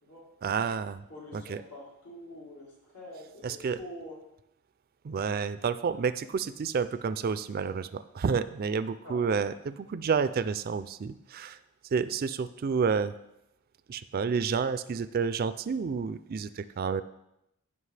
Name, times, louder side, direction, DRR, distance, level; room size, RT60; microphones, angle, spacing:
voice 1, 0.4-1.0 1.3-1.6 3.4-3.8 5.0-11.6 11.9-13.1 13.9-17.0, right 5 dB, 40° right, 14 dB, 0.3 m, -30 dB
voice 2, 1.1-4.2 9.0-9.4, left 1 dB, 80° left, -5 dB, 3.5 m, -45 dB
15.0 x 5.5 x 3.3 m, 0.84 s
head